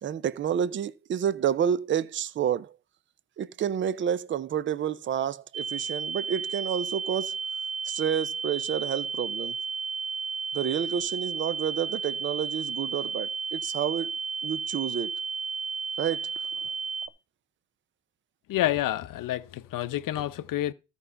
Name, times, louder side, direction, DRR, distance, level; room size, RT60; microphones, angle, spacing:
voice 1, 0.0-2.8 3.4-7.4 7.8-9.5 10.5-14.1 14.4-15.2 16.0-16.3, right 9 dB, 30° right, 0.5 m, -29 dB
sound 1, 5.5-17.1, right 5 dB, 55° right, 1.0 m, -33 dB
voice 2, 18.5-20.7, left 14 dB, 50° left, 0.8 m, -28 dB
13.5 x 5.4 x 5.6 m
cardioid pair, 115°, 41 cm